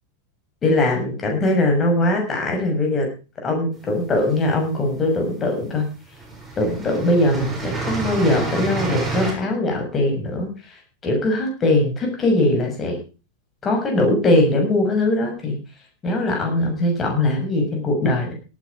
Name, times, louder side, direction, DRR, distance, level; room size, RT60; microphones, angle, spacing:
voice 1, 0.6-3.1 3.4-5.9 6.6-13.0 13.6-15.6 16.0-18.3, left 1 dB, 20° left, 2 dB, 6.7 m, -21 dB
sound 1, 3.9-4.8 5.7-5.8 6.1-9.3, right 3 dB, 10° right, 7.1 m, -28 dB
18.0 x 9.8 x 5.0 m, 0.34 s
figure-of-eight pair, 90°, 0 cm